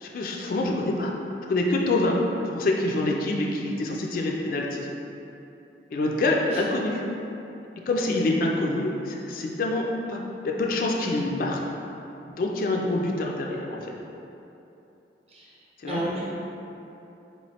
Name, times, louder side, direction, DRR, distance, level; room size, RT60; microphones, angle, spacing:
voice 1, 0.0-1.1 1.5-4.9 5.9-7.0 7.9-11.6 12.4-14.0 15.8-16.0, left 2 dB, 50° left, -1 dB, 0.3 m, -26 dB
voice 2, 15.9-16.2, right 1 dB, 35° right, -6 dB, 0.7 m, -31 dB
3.9 x 3.0 x 2.8 m, 2.9 s
head